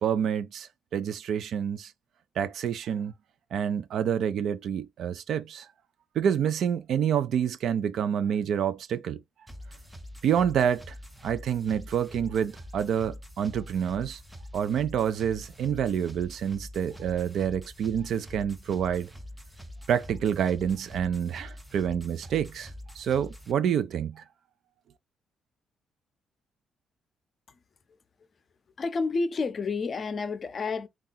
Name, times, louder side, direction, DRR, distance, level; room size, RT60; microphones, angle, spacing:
voice 1, 0.0-1.9 2.4-3.1 3.5-5.7 6.2-9.2 10.2-10.9 11.2-14.2 14.5-19.1 19.9-22.7 23.0-24.2, right 8 dB, 70° right, 0.4 m, -28 dB
sound 1, 9.5-23.5, left 1 dB, 5° right, 0.6 m, -45 dB
voice 2, 28.8-30.9, left 4 dB, 40° left, 0.5 m, -29 dB
2.8 x 2.4 x 3.8 m
cardioid pair, 90°, 0 cm